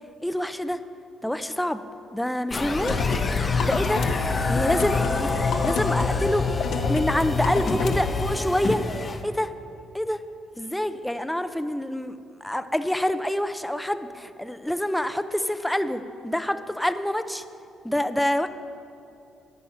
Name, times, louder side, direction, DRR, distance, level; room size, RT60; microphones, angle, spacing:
voice 1, 0.2-0.8 1.2-1.8 2.1-3.0 3.6-4.0 4.5-8.8 9.2-9.5 9.9-10.2 10.6-12.1 12.4-17.4 17.8-18.5, left 1 dB, 5° left, 11 dB, 0.5 m, -26 dB
sound 1, 2.5-9.2, left 3 dB, 35° left, 0.9 m, -29 dB
sound 2, 2.8-8.3, left 5 dB, 70° left, 0.8 m, -26 dB
10.0 x 9.9 x 5.7 m, 2.7 s
cardioid pair, 90°, 0 cm